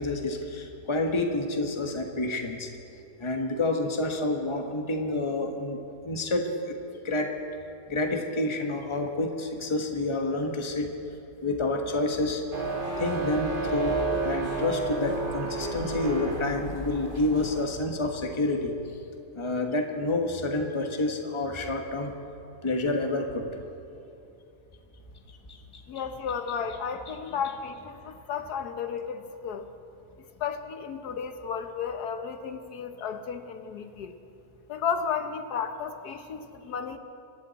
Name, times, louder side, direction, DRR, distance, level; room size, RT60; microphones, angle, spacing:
voice 1, 0.0-2.7 3.2-5.8 6.0-6.8 7.0-7.3 7.9-10.9 11.4-12.4 13.0-18.7 19.3-22.1 22.6-23.5 25.5-25.8, left 2 dB, 20° left, 3 dB, 1.2 m, -28 dB
sound 1, 12.5-17.6, right 3 dB, 30° right, 2.3 m, -31 dB
voice 2, 25.9-29.7 30.4-34.1 34.7-37.0, left 6 dB, 75° left, 8 dB, 1.5 m, -33 dB
25.5 x 12.0 x 4.1 m, 2.8 s
omnidirectional pair, 1.7 m